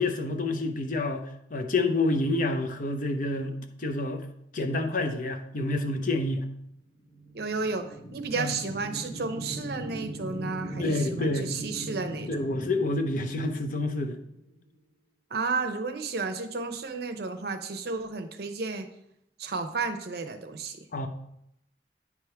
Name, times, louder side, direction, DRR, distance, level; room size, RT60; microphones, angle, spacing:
voice 1, 0.0-4.2 4.5-6.5 8.4-8.5 10.8-11.5 12.3-14.2 20.9-21.1, left 2 dB, 50° left, 5 dB, 0.7 m, -28 dB
sound 1, 7.0-14.7, right 1 dB, 70° left, 1.4 m, -39 dB
voice 2, 7.3-12.4 15.3-18.9 19.4-20.8, right 4 dB, 65° right, 8 dB, 0.7 m, -32 dB
9.6 x 3.6 x 4.5 m, 0.76 s
head